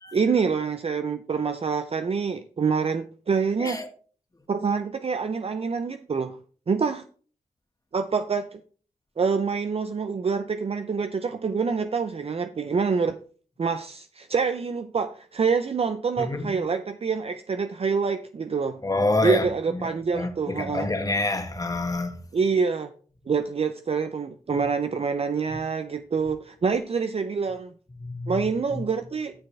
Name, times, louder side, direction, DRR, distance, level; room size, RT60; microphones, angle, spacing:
voice 1, 0.1-3.8 4.5-6.4 6.7-7.0 7.9-8.6 9.2-13.2 13.6-18.8 19.2-20.9 22.3-22.9 23.3-27.7 28.3-29.3, right 5 dB, 50° right, 0.5 m, -26 dB
voice 2, 16.2-16.6 18.8-19.4 19.7-22.1 28.0-28.4 28.7-28.8, left 2 dB, 25° left, 1.6 m, -27 dB
11.5 x 6.7 x 3.3 m
cardioid pair, 70°, 13 cm